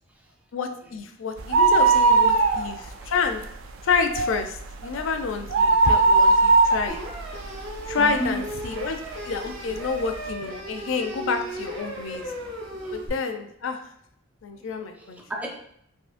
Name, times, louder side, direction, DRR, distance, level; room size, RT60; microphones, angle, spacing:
voice 1, 0.5-3.4 3.8-7.0 7.9-9.0 9.3-12.3 12.9-13.8 14.4-15.2, left 5 dB, 70° left, 6 dB, 0.4 m, -28 dB
sound 1, 1.4-3.0 3.4-3.5 3.9-8.3 8.8-8.9 9.7-9.8 10.0-10.1, right 3 dB, 85° right, 0.4 m, -19 dB
sound 2, 6.9-13.1, right 1 dB, 65° right, 0.8 m, -36 dB
voice 2, 8.0-8.4 12.7-13.1 14.6-15.5, left 1 dB, 10° right, 0 dB, 0.5 m, -34 dB
3.6 x 2.7 x 2.5 m, 0.71 s
head